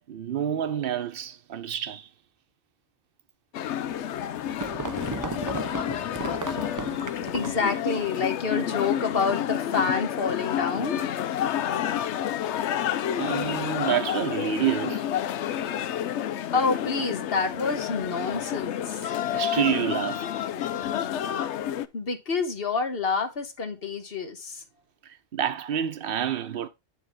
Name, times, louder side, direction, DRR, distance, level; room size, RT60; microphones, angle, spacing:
voice 1, 0.1-2.1 13.2-15.1 19.1-20.3 25.0-26.7, right 10 dB, 55° right, 1.0 m, -28 dB
sound 1, 3.5-21.9, left 10 dB, 80° left, 0.9 m, -29 dB
sound 2, 3.9-7.7, right 3 dB, 30° right, 0.3 m, -35 dB
voice 2, 7.3-11.0 16.5-19.1 21.9-24.6, left 4 dB, 60° left, 1.3 m, -28 dB
9.8 x 3.7 x 4.7 m
omnidirectional pair, 1.2 m